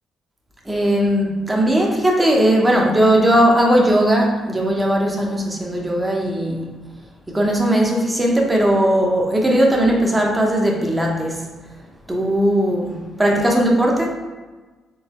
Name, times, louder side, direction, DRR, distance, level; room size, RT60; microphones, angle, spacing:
voice 1, 0.7-6.6 7.3-11.4 12.1-14.1, right 1 dB, 15° right, 0 dB, 0.8 m, -18 dB
3.8 x 3.5 x 2.9 m, 1.2 s
cardioid pair, 90°, 0 cm